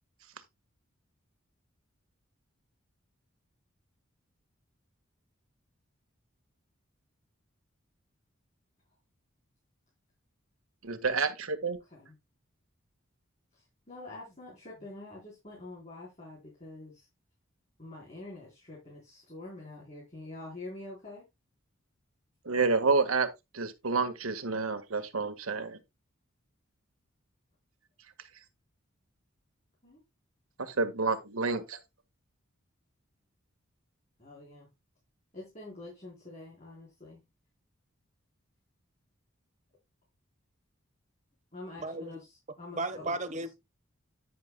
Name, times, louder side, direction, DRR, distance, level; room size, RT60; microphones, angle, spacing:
voice 1, 10.8-11.8 22.4-23.3 23.5-25.8 30.6-31.8, right 4 dB, 90° right, 1.5 m, -29 dB
voice 2, 13.5-17.1 17.8-21.3 29.8-30.0 34.2-34.7 35.3-37.2 41.5-43.2, left 2 dB, 30° left, 4.0 m, -46 dB
voice 3, 41.8-42.2 42.7-43.5, right 2 dB, 35° right, 1.1 m, -35 dB
11.0 x 9.6 x 2.2 m
head